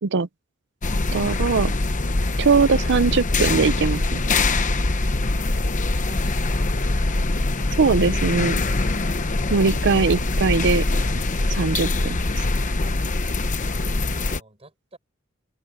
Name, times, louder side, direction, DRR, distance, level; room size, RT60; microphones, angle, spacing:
sound 1, 0.8-14.4, left 2 dB, 35° left, 1.0 m, -23 dB
voice 1, 1.1-1.7 2.4-4.2 7.8-8.6 9.5-10.9 11.5-12.2, right 4 dB, 55° right, 0.6 m, -20 dB
voice 2, 5.8-6.6 14.1-15.0, right 2 dB, 30° right, 6.6 m, -49 dB
open air
head